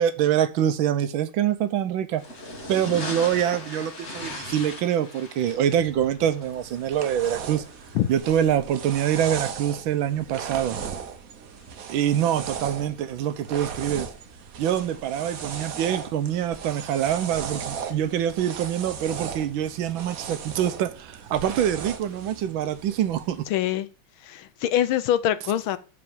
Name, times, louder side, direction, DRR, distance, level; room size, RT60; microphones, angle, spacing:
voice 1, 0.0-2.2 2.7-7.6 8.1-10.8 11.9-14.1 14.6-23.5, right 10 dB, 75° right, 1.5 m, -25 dB
sound 1, 2.2-8.2, left 1 dB, 35° left, 2.0 m, -39 dB
sound 2, 6.4-23.4, right 7 dB, 55° right, 1.1 m, -37 dB
voice 2, 23.5-23.9 24.2-25.8, left 11 dB, 75° left, 1.5 m, -24 dB
7.0 x 5.0 x 6.9 m
omnidirectional pair, 2.3 m